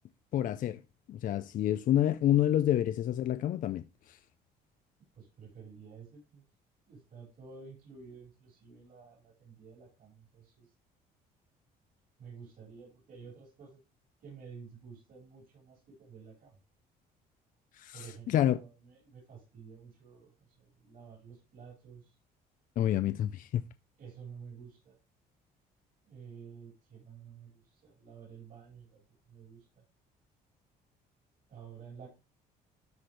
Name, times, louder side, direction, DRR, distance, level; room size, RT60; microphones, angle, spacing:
voice 1, 0.3-0.8 1.1-4.2 17.7-18.6 22.8-23.6, left 11 dB, 55° left, 0.5 m, -28 dB
voice 2, 5.1-6.4 6.9-10.7 12.2-13.8 14.2-16.6 17.9-22.2 24.0-25.0 26.0-29.8 31.5-32.1, right 6 dB, 55° right, 4.7 m, -51 dB
13.0 x 4.4 x 3.2 m
cardioid pair, 110°, 17 cm